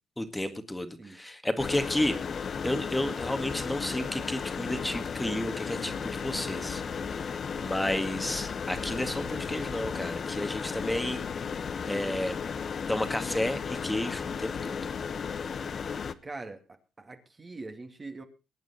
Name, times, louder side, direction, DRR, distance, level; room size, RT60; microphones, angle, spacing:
voice 1, 0.2-2.2 2.6-7.3 7.6-11.2 11.8-12.4 12.9-14.9, left 1 dB, 10° left, 8 dB, 2.0 m, -32 dB
sound 1, 1.6-16.1, left 6 dB, 50° left, 1.0 m, -34 dB
sound 2, 5.8-7.6 8.7-10.3, right 5 dB, 70° right, 3.5 m, -51 dB
voice 2, 7.9-8.3 16.2-16.6 17.0-18.2, right 3 dB, 30° right, 5 dB, 2.3 m, -42 dB
22.5 x 9.2 x 4.3 m, 0.30 s
cardioid pair, 90°, 0 cm